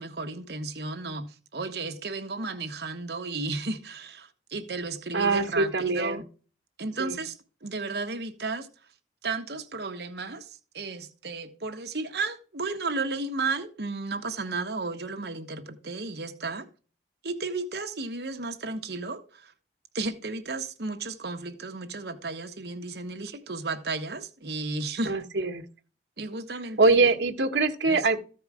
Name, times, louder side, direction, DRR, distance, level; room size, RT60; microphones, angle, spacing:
voice 1, 0.0-6.2 6.8-7.4 7.6-8.7 9.2-16.7 17.2-19.5 19.9-25.1 26.2-27.0 27.8-28.1, right 3 dB, 65° right, 1.1 m, -33 dB
voice 2, 5.1-6.2 7.0-7.2 25.1-25.6 26.8-28.2, right 3 dB, 85° right, 1.2 m, -23 dB
14.0 x 4.7 x 4.8 m
head